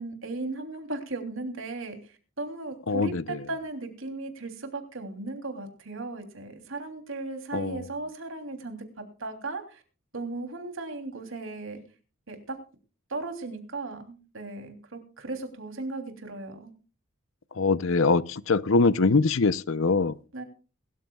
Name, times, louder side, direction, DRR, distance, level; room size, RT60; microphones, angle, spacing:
voice 1, 0.0-9.8 10.1-11.8 12.3-12.6 13.1-16.7 20.3-20.4, right 3 dB, 65° right, 3.1 m, -36 dB
voice 2, 2.9-3.2 7.5-7.8 17.6-20.1, left 3 dB, 65° left, 0.6 m, -23 dB
23.0 x 13.0 x 2.3 m
head